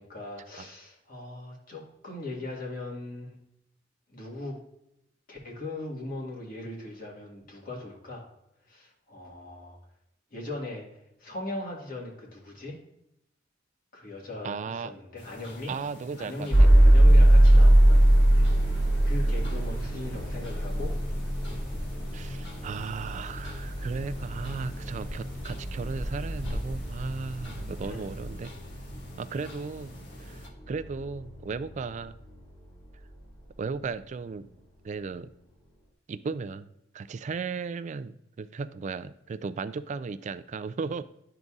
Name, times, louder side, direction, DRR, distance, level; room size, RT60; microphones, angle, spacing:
voice 1, 0.0-3.4 4.1-4.6 5.3-8.2 8.7-9.8 10.3-10.9 11.2-12.8 13.9-15.7 16.2-18.1 18.3-18.5 19.0-20.9 27.8-28.1, left 2 dB, 50° left, -2 dB, 1.7 m, -39 dB
voice 2, 14.4-14.9 15.7-16.7 22.1-28.5 29.2-29.9 30.2-32.2 33.6-34.5 34.8-35.3 36.1-36.7 36.9-41.0, right 4 dB, 40° right, 13 dB, 0.3 m, -35 dB
sound 1, 15.2-30.5, left 1 dB, 70° left, 1.3 m, -48 dB
sound 2, 16.5-32.4, right 1 dB, 25° left, 2.2 m, -23 dB
sound 3, 17.1-28.3, left 1 dB, ahead, 1.5 m, -40 dB
11.0 x 3.9 x 2.4 m, 0.80 s
head